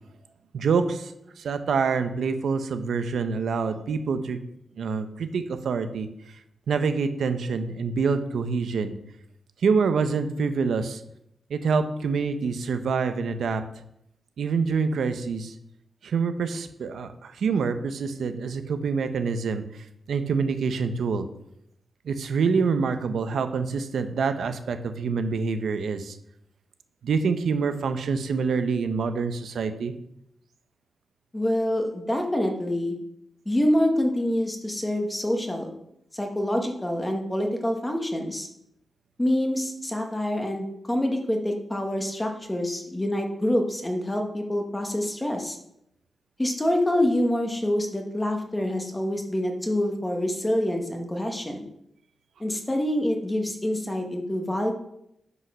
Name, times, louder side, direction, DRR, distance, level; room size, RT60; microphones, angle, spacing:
voice 1, 0.5-4.4 4.8-6.1 6.7-8.9 9.6-11.0 11.5-13.6 14.4-15.5 16.0-21.3 22.0-26.2 27.0-29.9, right 5 dB, 75° right, 9 dB, 1.0 m, -26 dB
voice 2, 31.3-32.9 33.4-35.7 36.1-38.5 39.2-45.6 46.4-51.7 52.4-54.7, left 1 dB, 10° left, 3 dB, 1.6 m, -26 dB
9.7 x 5.6 x 6.2 m, 0.78 s
wide cardioid pair, 125°, 0 cm